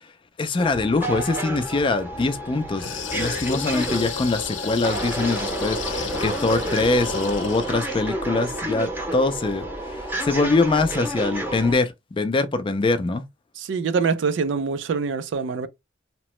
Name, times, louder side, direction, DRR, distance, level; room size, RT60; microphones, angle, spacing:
voice 1, 0.4-2.9 3.1-13.2, left 3 dB, 25° left, 0.3 m, -23 dB
sound 1, 0.6-11.7, right 1 dB, 10° right, 0.6 m, -30 dB
sound 2, 2.7-8.1, left 6 dB, 90° left, 0.6 m, -32 dB
voice 2, 13.6-15.7, right 5 dB, 75° right, 0.4 m, -24 dB
2.9 x 2.0 x 3.0 m
head